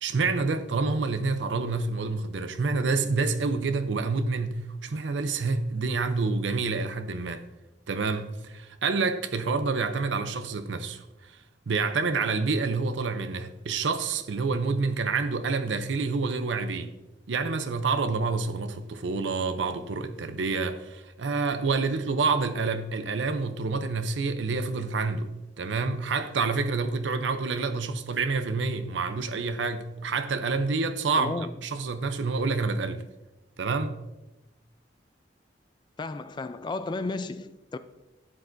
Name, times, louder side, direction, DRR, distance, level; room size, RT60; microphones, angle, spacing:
voice 1, 0.0-7.4 7.9-11.4 11.7-16.9 17.3-25.3 25.6-33.0 33.6-34.0, right 4 dB, 90° right, 0.6 m, -28 dB
voice 2, 31.2-31.6 36.0-37.8, left 3 dB, 25° left, 0.3 m, -33 dB
12.5 x 8.3 x 2.6 m
head